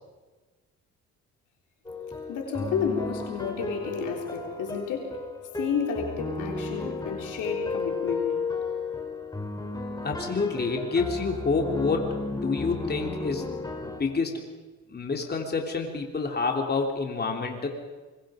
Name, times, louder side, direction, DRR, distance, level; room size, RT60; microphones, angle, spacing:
sound 1, 1.9-14.0, left 3 dB, 15° left, 3.7 m, -34 dB
voice 1, 2.3-5.2 5.6-8.3, left 7 dB, 85° left, 1 dB, 3.9 m, -31 dB
voice 2, 10.0-13.5 13.8-14.4 14.9-17.7, left 4 dB, 35° left, 2 dB, 3.5 m, -28 dB
25.0 x 22.5 x 5.2 m, 1.3 s
cardioid pair, 90°, 30 cm